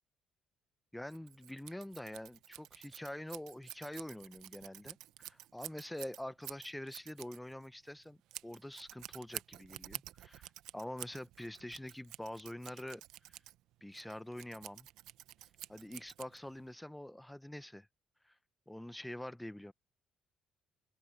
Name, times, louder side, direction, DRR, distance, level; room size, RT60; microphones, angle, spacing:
voice 1, 0.9-13.0 13.8-14.9 15.7-17.9 18.2-18.3 18.7-19.7, left 1 dB, 5° left, 1.2 m, -46 dB
Scissors, 1.1-16.7, right 15 dB, 70° right, 1.1 m, -50 dB
hypercardioid pair, 55°, 0 cm